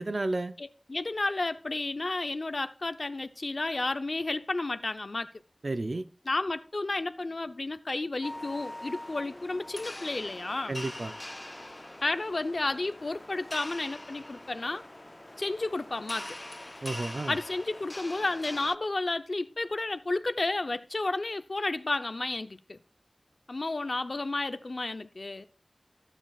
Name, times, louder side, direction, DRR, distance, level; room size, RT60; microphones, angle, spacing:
voice 1, 0.0-0.5 5.6-6.1 10.7-11.1 16.8-17.4, right 2 dB, 80° right, 0.5 m, -32 dB
voice 2, 0.6-5.3 6.3-10.7 12.0-14.8 15.4-16.4 17.3-22.8 23.5-25.5, left 2 dB, 90° left, 0.6 m, -32 dB
sound 1, 8.2-18.8, left 1 dB, 35° left, 0.4 m, -43 dB
14.5 x 9.0 x 2.4 m
wide cardioid pair, 45°, 0 cm